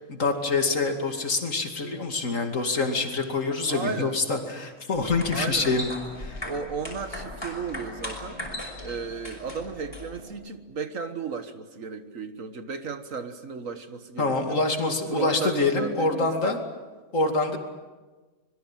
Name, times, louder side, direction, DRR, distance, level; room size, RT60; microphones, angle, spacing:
voice 1, 0.1-5.9 6.2-6.4 14.2-16.6 17.1-17.6, left 3 dB, 75° left, 4 dB, 2.9 m, -26 dB
voice 2, 3.7-4.2 5.3-5.8 6.4-8.4 8.8-14.6 15.1-16.6, right 5 dB, 75° right, 8 dB, 1.8 m, -34 dB
sound 1, 4.9-10.3, left 1 dB, 20° left, 5.8 m, -38 dB
26.0 x 22.0 x 7.5 m, 1.3 s
omnidirectional pair, 1.4 m